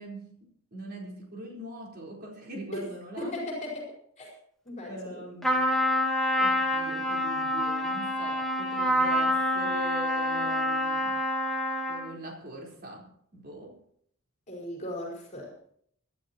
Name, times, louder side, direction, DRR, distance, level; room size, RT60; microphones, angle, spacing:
voice 1, 0.0-3.4 4.9-5.8 6.4-11.1 11.9-13.8, right 1 dB, 45° right, -1 dB, 4.3 m, -42 dB
voice 2, 3.2-4.3 4.6-5.2 14.5-15.5, left 1 dB, 35° left, -3 dB, 4.8 m, -37 dB
Trumpet, 5.4-12.1, left 1 dB, ahead, 2.4 m, -27 dB
25.0 x 12.0 x 3.0 m, 0.64 s
head